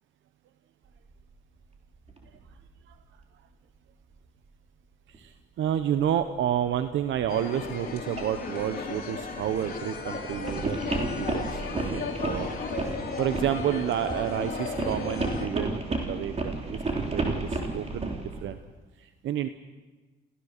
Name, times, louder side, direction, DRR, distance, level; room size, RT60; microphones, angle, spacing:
sound 1, 1.3-1.4 2.1-2.6 3.0-3.1 5.1-5.2 6.0-18.6, right 2 dB, 30° right, 3.6 m, -33 dB
voice 1, 5.1-11.6 11.9-12.5 12.8-16.8 17.1-18.1 18.4-18.6 19.0-19.5, right 10 dB, 75° right, 10 dB, 0.9 m, -30 dB
sound 2, 7.3-15.5, left 5 dB, 50° left, 4.2 m, -35 dB
28.5 x 16.0 x 6.7 m, 1.3 s
cardioid pair, 90°, 20 cm